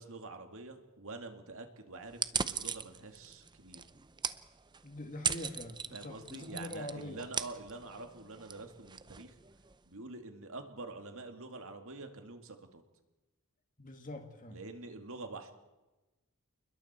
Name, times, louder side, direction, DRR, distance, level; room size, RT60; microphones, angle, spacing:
voice 1, 0.0-3.8 5.9-9.4 9.8-12.8 14.5-15.5, right 3 dB, 65° right, 5 dB, 2.4 m, -46 dB
sound 1, 2.1-9.8, right 6 dB, 20° right, 0.6 m, -40 dB
voice 2, 4.8-7.2 13.8-14.6, left 1 dB, 35° left, 4 dB, 2.1 m, -44 dB
28.5 x 21.5 x 4.4 m, 1.1 s
head